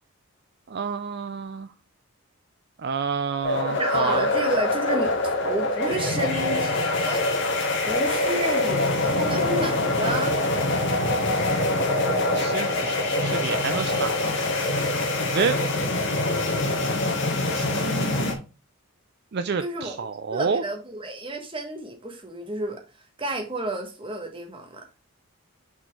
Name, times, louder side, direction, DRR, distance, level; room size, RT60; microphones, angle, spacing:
voice 1, 0.7-1.7 2.8-4.3 12.3-14.4 15.3-15.6 17.5-18.4 19.3-20.6, right 5 dB, 45° right, 0.4 m, -29 dB
sound 1, 3.4-18.3, left 2 dB, 55° left, 1.7 m, -24 dB
voice 2, 3.8-7.4 7.8-10.3 19.6-20.0 20.3-22.8 23.2-24.8, right 1 dB, 25° right, 1.4 m, -31 dB
6.0 x 4.4 x 4.7 m
head